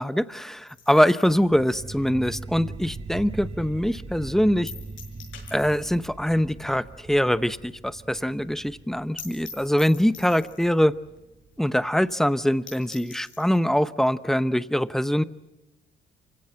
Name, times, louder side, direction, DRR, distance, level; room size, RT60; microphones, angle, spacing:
voice 1, 0.0-4.7 5.5-10.9 11.6-15.2, equal, ahead, 14 dB, 0.8 m, -23 dB
sound 1, 0.7-3.3 3.6-3.7 4.1-4.2 4.7-6.1 6.3-6.4 6.7-6.8 7.2-7.3 7.6-7.7 7.9-8.0 8.4-8.5 8.8-8.9 9.2-10.8 11.5-11.6 11.9-12.0 12.4-12.5 12.7-13.6, left 5 dB, 75° left, 6.6 m, -45 dB
sound 2, 1.4-12.3, right 3 dB, 30° right, 1.4 m, -41 dB
26.0 x 16.5 x 7.9 m, 1.0 s
cardioid pair, 90°, 20 cm